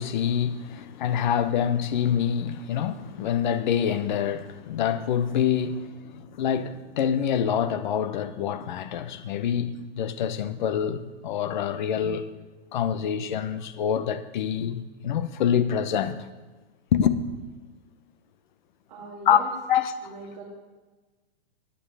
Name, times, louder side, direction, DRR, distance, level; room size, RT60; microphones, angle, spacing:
voice 1, 0.0-12.3 12.7-16.3 16.9-17.2 19.3-19.4 19.7-20.0, left 8 dB, 50° left, 0.8 m, -26 dB
voice 2, 18.9-19.5 20.0-20.4, right 3 dB, 40° right, 2.4 m, -41 dB
18.0 x 9.8 x 3.4 m
supercardioid pair, 175°, 31 cm